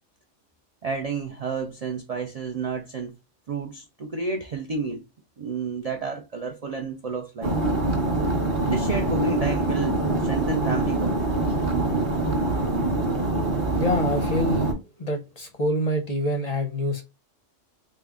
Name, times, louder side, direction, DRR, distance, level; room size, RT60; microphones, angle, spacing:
voice 1, 0.8-3.1 3.5-5.0 5.4-7.5 8.6-11.2, right 4 dB, 60° right, 0.4 m, -30 dB
sound 1, 7.4-14.7, right 2 dB, 30° right, 0.8 m, -24 dB
voice 2, 13.8-14.7 15.0-17.0, equal, 45° left, 0.6 m, -26 dB
3.6 x 2.2 x 3.5 m
omnidirectional pair, 1.3 m